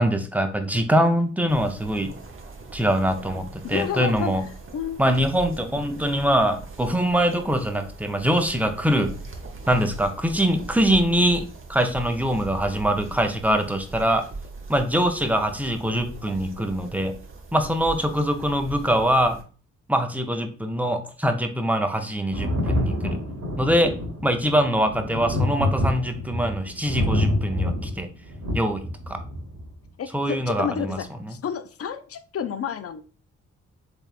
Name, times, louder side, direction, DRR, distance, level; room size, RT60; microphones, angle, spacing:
voice 1, 0.0-2.1 2.7-4.4 5.0-9.1 9.7-14.3 14.7-17.1 17.5-19.4 19.9-23.2 23.6-23.9 24.2-28.1 28.5-29.2 30.1-31.0 31.3-31.4, equal, 5° right, 5 dB, 0.7 m, -23 dB
sound 1, 1.5-19.4, right 3 dB, 35° right, 0.8 m, -40 dB
voice 2, 3.6-4.3 4.7-5.0 30.0-33.0, left 8 dB, 45° left, 11 dB, 0.5 m, -30 dB
Thunder, 22.3-29.7 30.8-30.9, left 1 dB, 60° right, 1.4 m, -27 dB
3.5 x 3.5 x 2.4 m, 0.38 s
hypercardioid pair, 40°, 34 cm